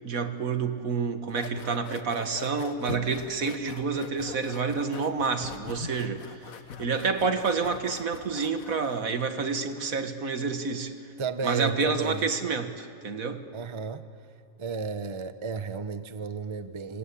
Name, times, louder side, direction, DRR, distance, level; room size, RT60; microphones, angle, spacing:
voice 1, 0.0-6.5 6.8-10.9 11.4-13.4, right 5 dB, 75° right, 8 dB, 1.9 m, -29 dB
sound 1, 1.3-9.1, left 7 dB, 75° left, 1.5 m, -43 dB
voice 2, 11.2-12.3 13.5-14.1 14.6-17.0, right 5 dB, 25° right, 10 dB, 0.9 m, -33 dB
26.5 x 25.5 x 8.5 m, 2.5 s
omnidirectional pair, 1.5 m